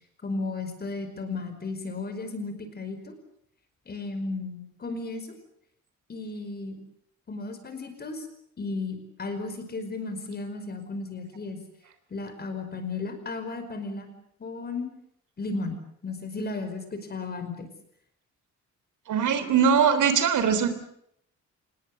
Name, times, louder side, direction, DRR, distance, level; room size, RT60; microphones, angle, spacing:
voice 1, 0.2-3.1 3.9-5.4 6.1-6.8 7.3-8.3 8.6-11.6 12.1-14.1 14.4-14.9 15.4-17.7, left 3 dB, 35° left, 8 dB, 5.2 m, -34 dB
voice 2, 19.1-20.7, right 7 dB, 85° right, 11 dB, 3.6 m, -21 dB
27.0 x 20.0 x 8.0 m, 0.71 s
wide cardioid pair, 175°, 30 cm